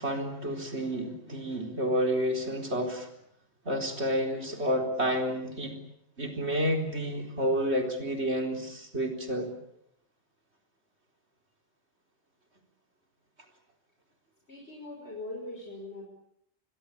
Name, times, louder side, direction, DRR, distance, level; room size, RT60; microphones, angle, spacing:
voice 1, 0.0-3.1 3.6-5.8 6.2-9.5, equal, 75° right, 4 dB, 4.4 m, -30 dB
voice 2, 14.5-16.0, left 2 dB, 70° left, -1 dB, 6.3 m, -41 dB
27.0 x 23.0 x 8.6 m, 0.73 s
omnidirectional pair, 1.1 m